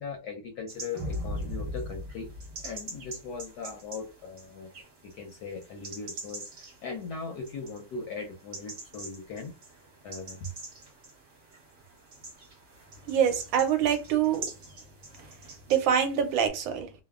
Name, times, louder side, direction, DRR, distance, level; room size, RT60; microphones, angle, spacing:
voice 1, 0.0-2.3 2.6-4.7 5.0-9.5 10.0-10.5, left 4 dB, 75° left, 1.0 m, -39 dB
sound 1, 0.7-16.5, right 3 dB, 50° right, 1.2 m, -46 dB
sound 2, 0.9-3.4, left 1 dB, 25° right, 0.5 m, -36 dB
voice 2, 13.1-14.5 15.7-16.9, right 8 dB, 80° right, 1.3 m, -25 dB
3.2 x 2.1 x 2.3 m
omnidirectional pair, 2.2 m